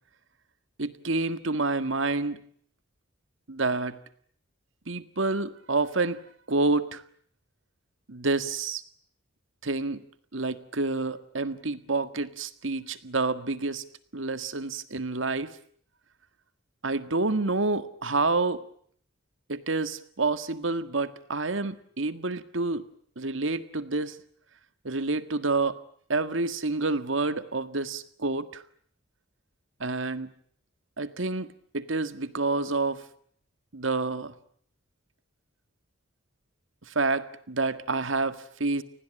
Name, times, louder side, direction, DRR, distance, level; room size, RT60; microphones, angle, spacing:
voice 1, 0.8-2.4 3.5-4.0 4.9-6.2 6.5-7.0 8.1-8.8 9.6-10.0 10.3-13.8 14.1-15.5 16.8-18.6 19.5-22.8 23.2-24.2 24.8-25.8 26.1-28.6 29.8-30.3 31.0-31.5 31.7-33.0 33.7-34.3 37.0-38.8, right 3 dB, 80° right, 12 dB, 1.7 m, -28 dB
29.0 x 20.0 x 8.9 m, 0.62 s
head